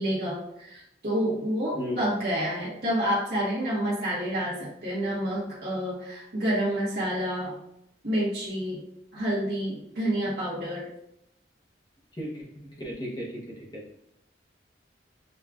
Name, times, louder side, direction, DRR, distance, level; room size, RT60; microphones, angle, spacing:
voice 1, 0.0-7.6 8.0-8.8 9.1-10.9, equal, 60° right, -8 dB, 1.1 m, -28 dB
voice 2, 12.1-12.4 12.8-13.8, equal, 25° left, -6 dB, 0.8 m, -35 dB
6.3 x 2.4 x 2.3 m, 0.79 s
head